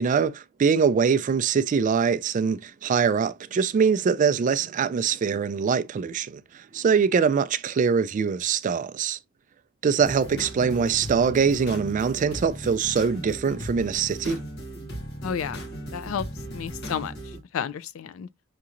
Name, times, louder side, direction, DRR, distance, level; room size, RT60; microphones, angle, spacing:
voice 1, 0.0-9.2 9.8-14.4, right 6 dB, 40° right, 0.3 m, -23 dB
sound 1, 10.0-17.4, equal, 55° left, 1.0 m, -37 dB
voice 2, 15.2-15.7 15.9-16.3 16.5-18.3, left 7 dB, 85° left, 0.4 m, -32 dB
5.9 x 2.8 x 2.5 m
head